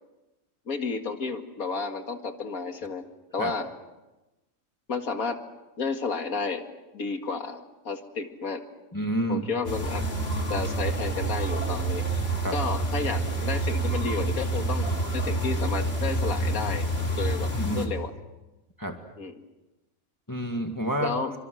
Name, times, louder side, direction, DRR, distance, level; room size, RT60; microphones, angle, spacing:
voice 1, 0.7-3.0 3.3-3.7 4.9-5.4 5.8-6.6 6.9-8.6 9.3-10.0 10.5-12.0 12.5-14.9 15.1-16.9 17.2-18.1 19.2-19.3 21.0-21.3, left 4 dB, 85° left, 5 dB, 2.5 m, -31 dB
voice 2, 8.9-9.5 12.4-12.6 17.5-17.9 18.8-19.0 20.3-21.1, right 1 dB, 15° left, 3 dB, 2.1 m, -29 dB
sound 1, 9.6-17.9, right 2 dB, 45° left, 3.5 m, -28 dB
30.0 x 25.5 x 6.4 m, 1.0 s
omnidirectional pair, 1.5 m